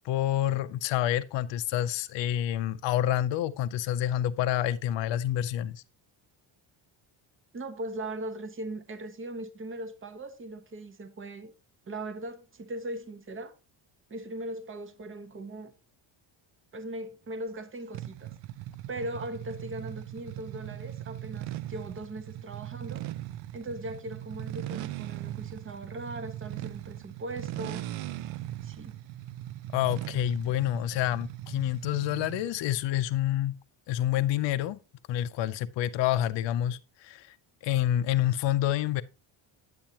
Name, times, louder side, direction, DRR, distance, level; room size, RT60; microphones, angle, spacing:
voice 1, 0.0-5.8 29.7-33.6 33.9-34.8 35.1-37.4 37.6-39.0, left 12 dB, 60° left, 0.6 m, -28 dB
voice 2, 7.5-11.5 11.9-13.5 14.1-15.7 16.7-18.3 18.9-23.1 23.5-27.9 28.6-28.9, right 1 dB, 25° right, 0.9 m, -39 dB
sound 1, 17.9-32.6, right 14 dB, 70° right, 0.6 m, -39 dB
8.7 x 8.6 x 2.8 m
cardioid pair, 145°, 49 cm